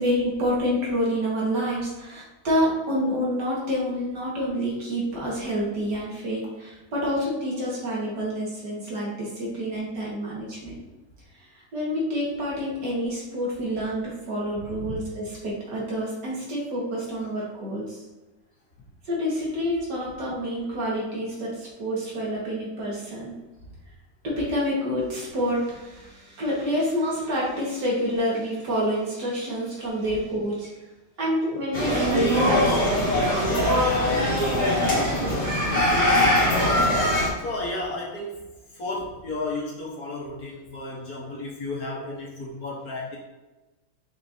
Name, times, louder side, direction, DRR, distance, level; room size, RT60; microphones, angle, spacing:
voice 1, 0.0-10.8 11.7-18.0 19.1-23.3 24.2-30.8 31.2-33.2, equal, 60° right, -5 dB, 2.3 m, -28 dB
sound 1, 31.7-37.3, left 1 dB, 35° left, 2.3 m, -22 dB
voice 2, 35.3-37.0 37.4-38.5 38.7-43.2, left 2 dB, 55° left, -4 dB, 1.6 m, -33 dB
6.4 x 5.5 x 2.8 m, 1.1 s
omnidirectional pair, 2.1 m